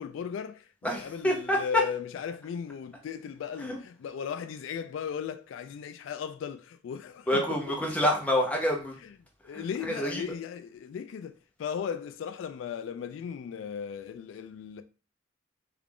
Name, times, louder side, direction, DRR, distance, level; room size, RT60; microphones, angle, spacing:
voice 1, 0.0-7.6 7.8-7.9 9.4-14.8, left 7 dB, 85° left, 0.3 m, -36 dB
voice 2, 0.8-1.8 3.6-3.8 7.3-8.9 9.5-10.2, equal, 10° left, 0.8 m, -27 dB
3.3 x 2.5 x 3.4 m
head